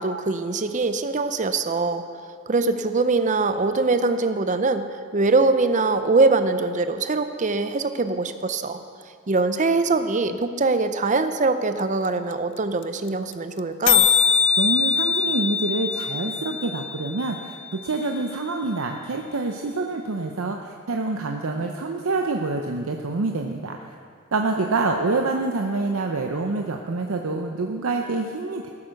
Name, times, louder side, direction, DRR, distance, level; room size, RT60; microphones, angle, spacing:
voice 1, 0.0-2.0 2.5-8.8 9.3-14.1, right 3 dB, 35° right, 10 dB, 0.6 m, -22 dB
sound 1, 11.8-11.9 12.1-12.2 12.3-12.6 12.8-12.9 13.1-13.3 13.6-13.7 13.9-17.8, left 7 dB, 60° left, 0.5 m, -22 dB
voice 2, 14.6-23.9 24.3-28.7, right 3 dB, 80° right, 3 dB, 0.7 m, -26 dB
14.0 x 8.6 x 6.4 m, 2.2 s
head